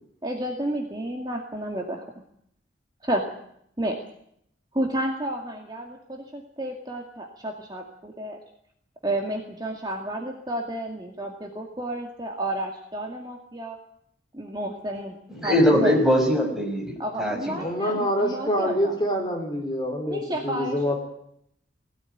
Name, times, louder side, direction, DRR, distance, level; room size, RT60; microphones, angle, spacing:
voice 1, 0.2-2.0 3.0-3.2 3.8-4.0 4.7-8.4 9.0-13.8 14.3-15.2 15.4-16.0 17.0-18.9 20.1-20.9, right 1 dB, 20° right, 1 dB, 2.2 m, -31 dB
voice 2, 15.3-17.7, equal, ahead, -1 dB, 5.9 m, -22 dB
voice 3, 17.6-20.9, equal, 25° left, 2 dB, 4.2 m, -26 dB
20.5 x 17.0 x 9.3 m, 0.73 s
head